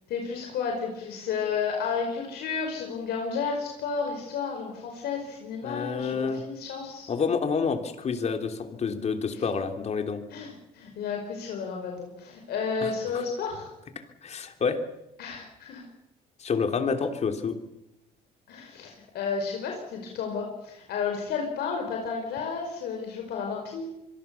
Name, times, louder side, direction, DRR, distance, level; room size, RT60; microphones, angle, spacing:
voice 1, 0.1-7.1 9.3-9.4 10.3-13.7 15.2-15.9 18.5-23.9, left 5 dB, 70° left, 2 dB, 5.3 m, -32 dB
voice 2, 5.6-6.4 7.1-10.2 12.8-13.2 14.2-14.8 16.4-17.6, left 5 dB, 40° left, 6 dB, 3.2 m, -28 dB
26.0 x 22.5 x 7.1 m, 0.88 s
cardioid pair, 110°, 17 cm